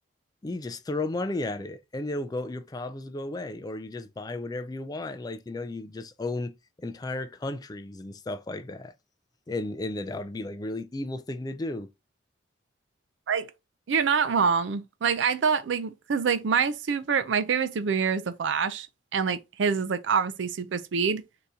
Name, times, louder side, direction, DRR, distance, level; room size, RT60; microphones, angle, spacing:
voice 1, 0.4-8.9 9.5-11.9, left 2 dB, 20° left, 0.3 m, -34 dB
voice 2, 13.9-18.9 19.1-21.2, right 6 dB, 85° right, 0.5 m, -26 dB
3.9 x 2.8 x 3.5 m
head